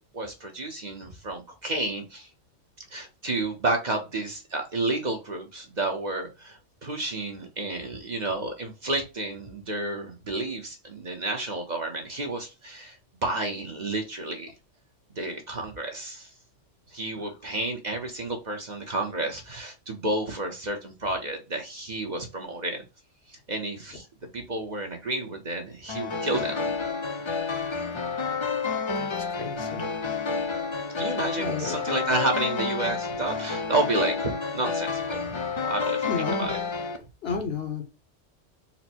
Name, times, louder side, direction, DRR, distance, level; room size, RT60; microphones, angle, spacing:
voice 1, 0.0-2.3 2.9-14.5 15.1-16.3 16.9-22.8 23.3-24.1 24.3-26.6 31.0-36.6, right 2 dB, 40° right, 2 dB, 0.9 m, -31 dB
sound 1, 25.9-37.0, left 5 dB, 40° left, 0.4 m, -30 dB
voice 2, 29.4-29.9 31.4-31.7 36.1-36.5 37.2-37.9, left 5 dB, 60° left, 4 dB, 1.1 m, -32 dB
4.2 x 2.1 x 4.2 m, 0.28 s
omnidirectional pair, 1.2 m